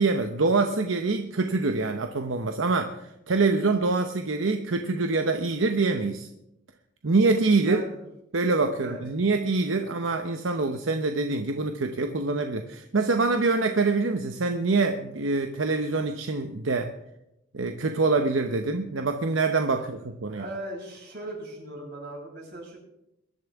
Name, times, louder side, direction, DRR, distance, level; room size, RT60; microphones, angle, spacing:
voice 1, 0.0-6.3 7.0-7.8 8.3-16.9 17.5-20.5, right 3 dB, 85° right, 6 dB, 0.9 m, -25 dB
voice 2, 7.6-8.0 8.8-9.0 9.8-10.0 20.3-22.8, right 1 dB, 60° right, -2 dB, 6.5 m, -38 dB
22.5 x 12.0 x 3.6 m, 0.85 s
head